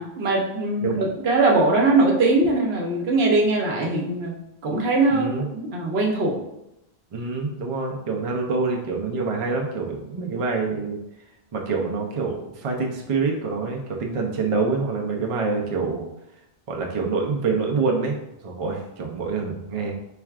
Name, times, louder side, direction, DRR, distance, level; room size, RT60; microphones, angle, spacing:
voice 1, 0.0-4.4 4.6-6.3, right 2 dB, 75° right, 0 dB, 1.0 m, -21 dB
voice 2, 5.1-5.5 7.1-11.0 11.5-16.1 16.7-19.9, right 4 dB, 40° right, 0 dB, 0.5 m, -26 dB
4.5 x 3.4 x 2.4 m, 0.86 s
omnidirectional pair, 1.1 m